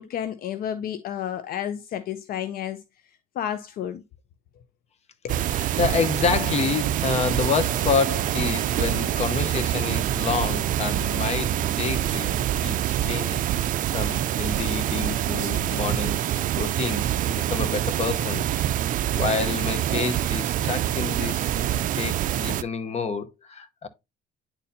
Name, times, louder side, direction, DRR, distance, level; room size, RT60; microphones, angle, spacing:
voice 1, 0.0-2.8 3.4-4.0 5.2-5.5, left 10 dB, 60° left, 0.5 m, -31 dB
sound 1, 5.3-22.6, right 12 dB, 50° right, 0.4 m, -25 dB
voice 2, 5.4-18.5 19.1-23.9, left 5 dB, 40° left, 0.8 m, -29 dB
9.6 x 4.2 x 2.6 m
cardioid pair, 110°, 17 cm